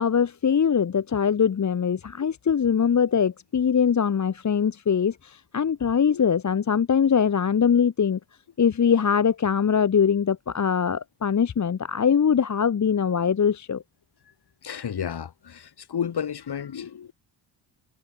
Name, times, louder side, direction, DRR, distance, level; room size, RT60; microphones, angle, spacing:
voice 1, 0.0-8.2 8.6-13.8, left 7 dB, 35° left, 1.3 m, -22 dB
voice 2, 14.6-17.1, left 8 dB, 55° left, 4.2 m, -32 dB
cardioid pair, 80°, 48 cm